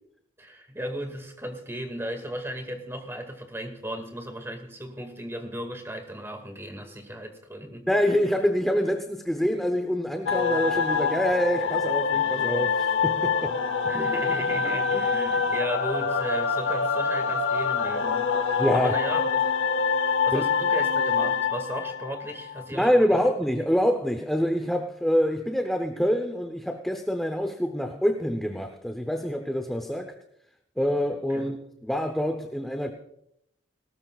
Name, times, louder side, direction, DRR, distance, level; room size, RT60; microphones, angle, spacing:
voice 1, 0.4-7.9 13.9-19.4 20.1-23.1 31.3-31.6, equal, 15° right, 5 dB, 2.1 m, -36 dB
voice 2, 7.9-13.6 13.8-13.9 18.6-18.9 20.3-20.5 22.7-30.1 30.8-31.6 31.8-32.9, equal, ahead, 5 dB, 0.8 m, -26 dB
sound 1, 10.3-22.8, left 5 dB, 85° left, 1.0 m, -25 dB
19.5 x 18.0 x 2.4 m, 0.78 s
head